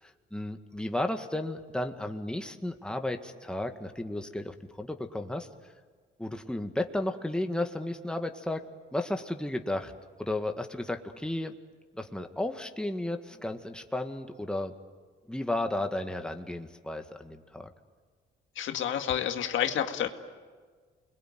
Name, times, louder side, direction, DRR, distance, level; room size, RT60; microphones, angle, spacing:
voice 1, 0.0-5.5 6.2-8.6 8.9-9.9 10.2-11.5 11.9-14.7 15.3-17.7, left 1 dB, 5° left, 5 dB, 1.9 m, -33 dB
voice 2, 18.6-20.1, left 9 dB, 75° left, 6 dB, 2.0 m, -29 dB
29.0 x 22.0 x 9.4 m, 1.5 s
cardioid pair, 90°, 20 cm